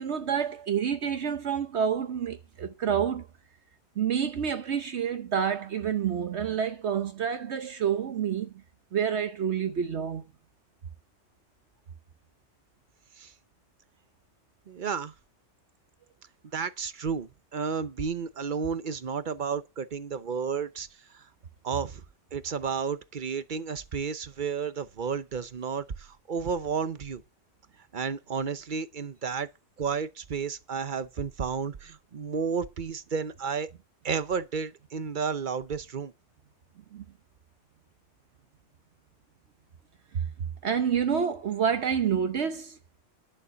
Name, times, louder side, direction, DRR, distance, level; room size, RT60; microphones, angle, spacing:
voice 1, 0.0-3.3 4.0-8.5 8.9-10.2 36.9-37.0 40.1-40.3 40.6-42.8, right 8 dB, 65° right, 1.1 m, -28 dB
voice 2, 14.7-15.1 16.5-20.9 21.1-21.3 21.6-22.0 22.3-27.2 27.9-29.5 29.8-33.7 34.0-36.1, right 6 dB, 45° right, 0.9 m, -32 dB
11.0 x 6.8 x 6.9 m
omnidirectional pair, 1.2 m